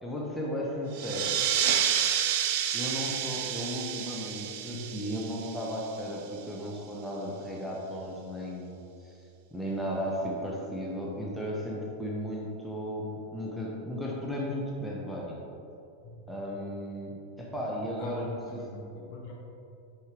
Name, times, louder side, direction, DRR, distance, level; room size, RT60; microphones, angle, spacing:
voice 1, 0.0-1.4 2.7-9.2 9.5-15.4 16.3-18.7, equal, ahead, -4 dB, 1.1 m, -35 dB
sound 1, 0.9-6.1, right 9 dB, 50° right, 0.4 m, -30 dB
voice 2, 4.6-4.9 16.0-16.2 17.5-17.6 18.0-19.3, left 1 dB, 45° left, -2 dB, 1.4 m, -43 dB
9.4 x 4.8 x 3.6 m, 2.8 s
figure-of-eight pair, 90°, 0 cm